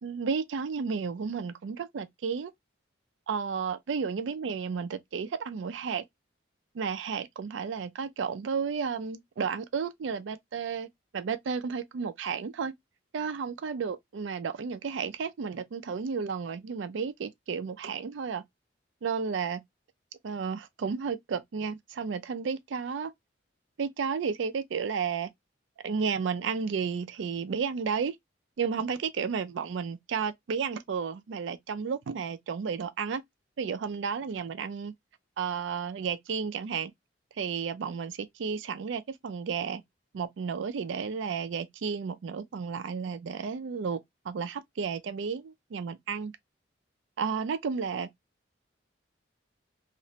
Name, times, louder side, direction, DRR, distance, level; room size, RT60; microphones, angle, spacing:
voice 1, 0.0-2.5 3.3-6.0 6.8-10.9 11.1-12.7 13.1-18.4 19.0-19.6 20.2-23.1 23.8-25.3 25.8-28.2 28.6-33.2 33.6-34.9 35.4-36.9 37.4-39.8 40.1-44.0 44.3-46.3 47.2-48.1, right 6 dB, 75° right, 0.4 m, -32 dB
2.5 x 2.1 x 2.7 m
head